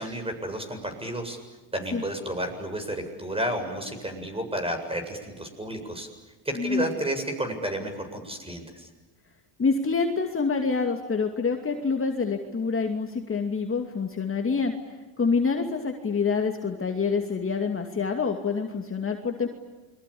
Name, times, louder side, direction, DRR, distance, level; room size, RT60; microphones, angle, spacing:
voice 1, 0.0-1.4 1.7-6.1 6.4-8.9, right 1 dB, 10° right, 6 dB, 7.6 m, -31 dB
voice 2, 9.6-14.7 15.2-19.5, left 5 dB, 25° left, 3 dB, 2.6 m, -26 dB
29.0 x 23.0 x 8.7 m, 1.2 s
supercardioid pair, 85°, 48 cm